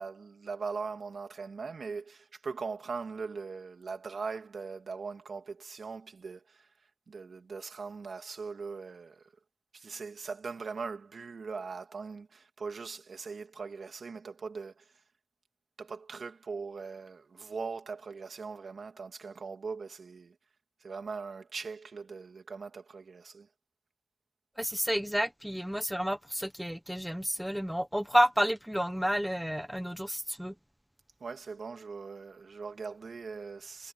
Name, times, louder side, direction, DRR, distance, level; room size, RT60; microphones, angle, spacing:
voice 1, 0.0-6.7 7.1-9.3 9.7-15.0 15.8-20.4 20.8-23.5 31.2-33.9, right 4 dB, 90° right, 2.5 m, -40 dB
voice 2, 24.6-30.5, equal, 5° right, 1.1 m, -30 dB
wide cardioid pair, 75°, 0 cm